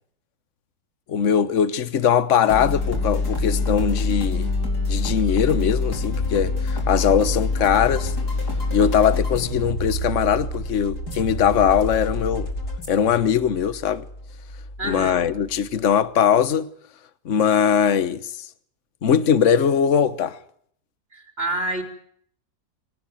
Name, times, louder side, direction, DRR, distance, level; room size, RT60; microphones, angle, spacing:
voice 1, 1.1-4.5 4.9-8.1 8.7-12.5 12.9-14.0 14.8-16.7 17.2-18.3 19.0-20.4, left 8 dB, 50° left, 1.4 m, -20 dB
sound 1, 2.5-15.9, left 2 dB, 75° left, 5.0 m, -26 dB
voice 2, 14.8-15.3 21.1-21.8, right 1 dB, 35° right, 4.3 m, -27 dB
23.5 x 18.5 x 9.3 m
omnidirectional pair, 1.7 m